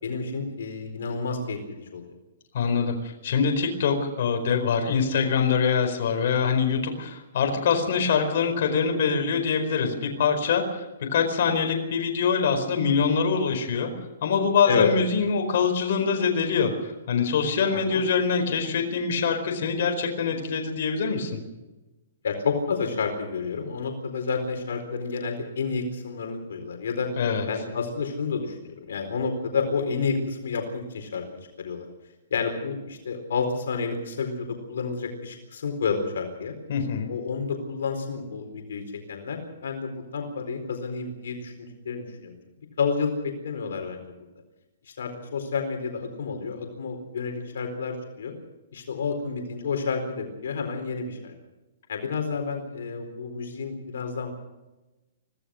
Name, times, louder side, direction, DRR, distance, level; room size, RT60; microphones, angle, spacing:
voice 1, 0.0-2.0 14.6-14.9 17.7-18.0 22.2-27.1 27.5-31.2 31.6-31.9 32.3-36.5 37.1-38.8 39.1-42.4 42.8-44.0 45.0-48.3 48.7-51.3 51.9-54.3, left 5 dB, 80° left, 5 dB, 4.3 m, -30 dB
voice 2, 2.5-13.9 14.2-21.3 27.2-27.5 36.7-37.1, left 6 dB, 55° left, 4 dB, 4.6 m, -24 dB
25.0 x 16.5 x 6.4 m, 1.1 s
hypercardioid pair, 160°, 0 cm